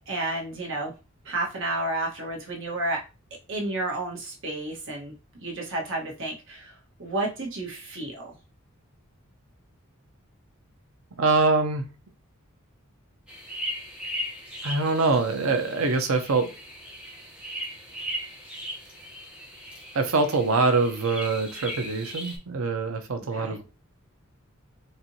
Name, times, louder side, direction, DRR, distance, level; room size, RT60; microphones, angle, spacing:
voice 1, 0.1-0.9 1.2-3.0 3.5-5.1 5.4-8.3 23.3-23.6, right 2 dB, 65° right, 1.3 m, -31 dB
voice 2, 11.2-11.9 14.6-16.5 19.9-23.6, right 3 dB, 85° right, 0.7 m, -24 dB
sound 1, 13.3-22.4, equal, 5° right, 1.0 m, -38 dB
4.3 x 2.6 x 2.7 m
head